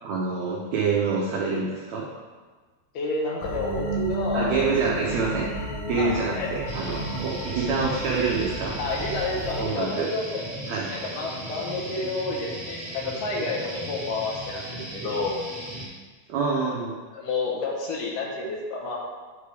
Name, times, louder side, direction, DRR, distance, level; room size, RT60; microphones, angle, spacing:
voice 1, 0.0-2.0 4.3-5.5 5.9-8.8 9.6-10.1 10.7-10.9 16.3-16.9, right 4 dB, 85° right, -3 dB, 1.5 m, -26 dB
voice 2, 2.9-4.5 6.0-6.5 8.8-10.4 10.9-15.3 17.1-19.0, left 3 dB, 70° left, -2 dB, 2.4 m, -30 dB
sound 1, 3.4-9.6, equal, 50° left, 1.1 m, -33 dB
sound 2, 6.7-15.9, right 1 dB, 40° right, 0.8 m, -37 dB
9.7 x 4.8 x 3.4 m, 1.4 s
omnidirectional pair, 4.3 m